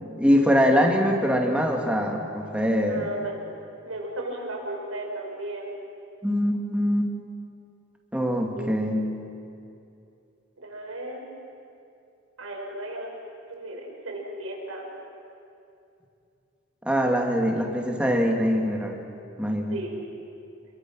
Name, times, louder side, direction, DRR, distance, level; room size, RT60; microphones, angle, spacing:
voice 1, 0.0-3.1 6.2-7.1 8.1-9.1 16.8-19.0 19.4-19.8, equal, 5° right, 1 dB, 2.6 m, -23 dB
voice 2, 2.9-3.4 3.8-5.8 8.6-8.7 10.6-11.2 12.4-13.1 13.5-14.9 19.7-20.0, right 1 dB, 90° right, -1 dB, 5.6 m, -35 dB
28.0 x 23.0 x 6.3 m, 2.6 s
head